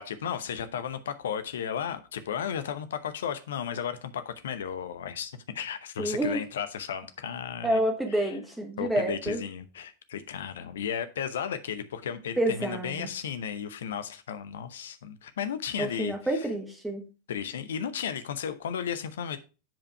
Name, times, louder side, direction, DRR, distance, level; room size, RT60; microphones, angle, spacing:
voice 1, 0.0-7.8 8.1-8.3 8.8-16.5 17.3-19.4, left 8 dB, 60° left, 0.8 m, -34 dB
voice 2, 6.0-6.4 7.6-9.4 12.4-13.1 15.8-17.0, right 1 dB, 5° right, 1.1 m, -28 dB
7.5 x 5.0 x 4.5 m
figure-of-eight pair, 90°, 0 cm